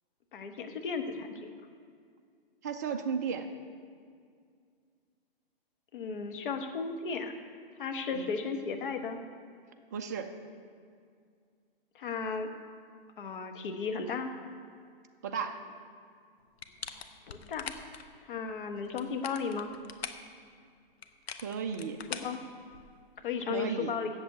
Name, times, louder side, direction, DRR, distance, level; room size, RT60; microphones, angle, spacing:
voice 1, 0.3-1.5 5.9-7.3 7.8-9.2 11.9-12.5 13.2-14.3 17.3-17.7 18.3-19.7 22.2-22.4 23.2-24.1, left 5 dB, 60° left, 5 dB, 1.2 m, -35 dB
voice 2, 2.6-3.5 8.1-8.3 9.9-10.3 15.2-15.6 21.4-22.0 23.5-24.0, right 6 dB, 20° right, 6 dB, 0.3 m, -34 dB
sound 1, 16.6-18.0 18.8-20.3 21.0-23.0, left 6 dB, 90° left, 0.9 m, -43 dB
7.9 x 7.5 x 8.0 m, 2.2 s
hypercardioid pair, 145°, 30 cm